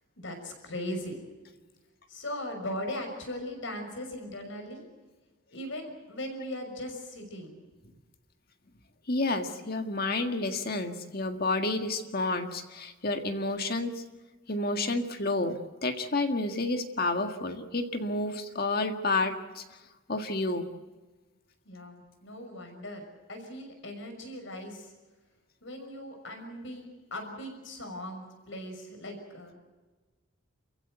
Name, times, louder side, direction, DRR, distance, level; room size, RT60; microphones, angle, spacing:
voice 1, 0.2-1.2 2.1-4.8 5.5-7.6 21.6-23.0 23.3-24.9 25.6-29.5, left 1 dB, 65° left, 4 dB, 6.1 m, -39 dB
voice 2, 9.1-14.0 14.5-19.6 20.1-20.7, left 2 dB, 45° left, 6 dB, 1.8 m, -30 dB
29.0 x 15.5 x 7.9 m, 1.2 s
head